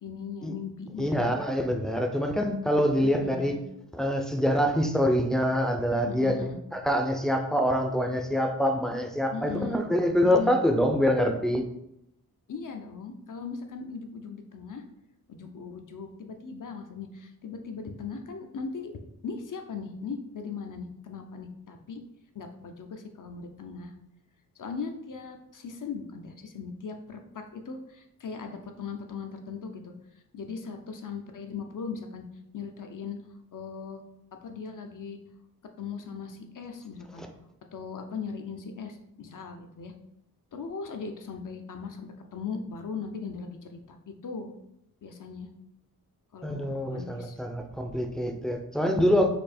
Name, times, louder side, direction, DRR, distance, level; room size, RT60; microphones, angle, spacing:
voice 1, 0.0-1.3 3.0-3.6 6.1-6.6 9.3-9.8 10.2-10.5 12.5-14.8 15.3-18.9 19.2-22.0 22.3-23.9 24.6-29.9 30.3-32.2 32.5-33.2 33.5-34.0 34.4-35.2 35.8-37.2 37.7-39.9 40.5-44.5 45.0-45.5 46.3-47.4, left 5 dB, 55° left, 5 dB, 0.7 m, -39 dB
voice 2, 1.0-3.6 3.9-6.5 6.7-11.6 37.2-37.3 46.4-49.3, equal, ahead, 3 dB, 0.5 m, -25 dB
4.4 x 2.8 x 4.3 m, 0.80 s
wide cardioid pair, 110°, 37 cm